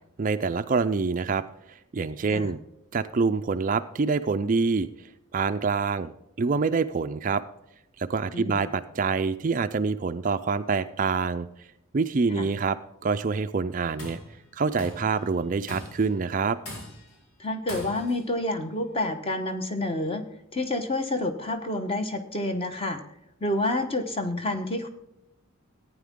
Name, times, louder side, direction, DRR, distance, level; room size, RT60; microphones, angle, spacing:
voice 1, 0.2-2.6 2.9-4.9 5.3-6.1 6.4-7.4 8.0-11.5 11.9-14.2 14.5-16.6, right 4 dB, 35° right, 11 dB, 0.4 m, -26 dB
voice 2, 8.3-8.6 12.3-12.5 17.4-20.2 20.5-23.0 23.4-24.9, left 1 dB, 25° left, 7 dB, 1.1 m, -28 dB
Tools, 13.7-14.3 14.8-15.1 15.7-16.1 16.6-17.2 17.7-18.2, left 1 dB, 80° left, 4.4 m, -40 dB
15.0 x 9.3 x 3.7 m, 0.84 s
head